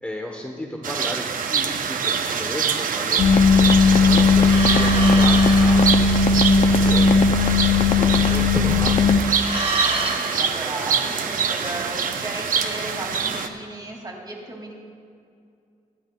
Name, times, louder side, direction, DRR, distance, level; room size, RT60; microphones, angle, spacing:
voice 1, 0.0-3.7 4.1-7.2 7.8-9.2, equal, 10° left, 0 dB, 1.1 m, -33 dB
sound 1, 0.8-13.5, right 6 dB, 85° right, 0.7 m, -25 dB
sound 2, 3.2-9.2, left 4 dB, 65° left, 0.6 m, -17 dB
sound 3, 4.4-8.9 9.2-11.7, right 3 dB, 45° right, 1.8 m, -30 dB
voice 2, 10.1-14.7, right 1 dB, 30° right, -1 dB, 2.5 m, -35 dB
25.0 x 9.8 x 2.3 m, 2.4 s
wide cardioid pair, 115°, 14 cm